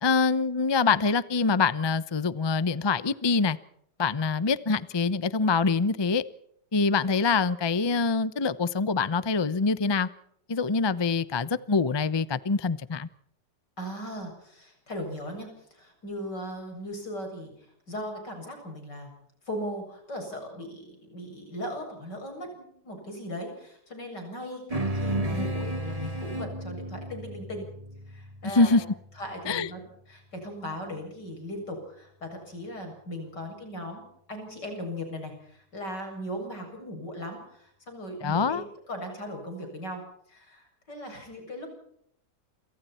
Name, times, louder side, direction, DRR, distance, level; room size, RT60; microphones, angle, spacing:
voice 1, 0.0-3.6 4.0-6.2 6.7-10.1 10.5-13.1 28.5-28.8 29.5-29.7 38.2-38.6, left 4 dB, 25° left, 15 dB, 0.5 m, -25 dB
voice 2, 13.8-19.1 19.5-27.7 28.1-28.8 29.2-29.8 30.1-38.6 38.9-40.0 40.3-41.7, equal, 80° left, 3 dB, 8.1 m, -38 dB
sound 1, 24.7-29.4, right 1 dB, 20° right, 2.2 m, -33 dB
28.0 x 27.0 x 4.4 m, 0.69 s
omnidirectional pair, 1.8 m